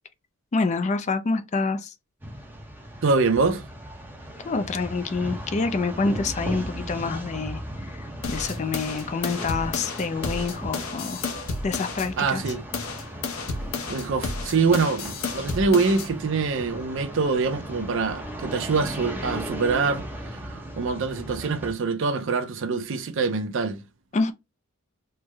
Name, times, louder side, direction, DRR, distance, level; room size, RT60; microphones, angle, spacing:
voice 1, 0.5-1.9 4.4-7.9 8.3-11.2 11.6-12.4 24.1-24.3, left 4 dB, 35° left, 0.4 m, -27 dB
sound 1, 2.2-21.7, right 1 dB, 10° right, 0.6 m, -37 dB
voice 2, 3.0-3.6 12.2-12.7 13.9-23.8, right 4 dB, 60° right, 0.5 m, -25 dB
sound 2, 8.2-12.1 12.5-16.1, left 4 dB, 75° left, 0.8 m, -32 dB
3.2 x 2.1 x 3.3 m
head